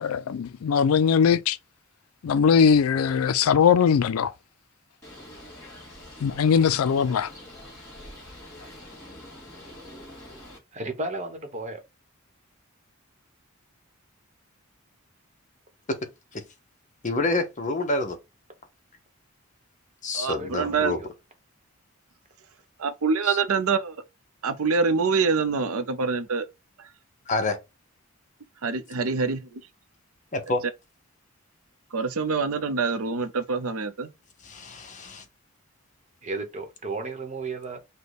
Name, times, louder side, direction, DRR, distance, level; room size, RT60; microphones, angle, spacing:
voice 1, 0.0-1.6 2.2-4.3 6.2-7.3, left 7 dB, 80° left, 0.4 m, -20 dB
Bird, 5.0-10.6, left 1 dB, 15° left, 2.8 m, -45 dB
voice 2, 10.7-11.8 20.4-21.1 36.2-37.8, right 2 dB, 35° right, 1.0 m, -34 dB
voice 3, 17.0-18.2 20.0-21.0 23.3-23.4 27.3-27.6 30.3-30.6 34.4-35.2, left 2 dB, 35° left, 0.8 m, -27 dB
voice 4, 20.1-21.0 22.8-24.0 24.4-26.5 28.6-29.6 31.9-34.1, right 5 dB, 80° right, 0.6 m, -25 dB
5.1 x 2.2 x 4.0 m
head